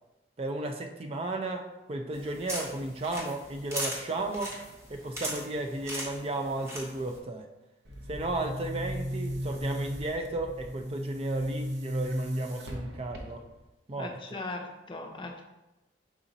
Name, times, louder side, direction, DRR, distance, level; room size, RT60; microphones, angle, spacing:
voice 1, 0.4-4.6 4.9-7.5 8.1-13.4 13.9-14.4, right 2 dB, 35° right, 3 dB, 0.4 m, -34 dB
sound 1, 2.1-7.2, equal, 15° right, 0.9 m, -39 dB
Boom, 7.8-13.7, equal, 80° right, 0.7 m, -36 dB
voice 2, 14.0-15.4, left 2 dB, 30° left, 3 dB, 0.5 m, -39 dB
4.8 x 4.1 x 2.6 m, 0.98 s
head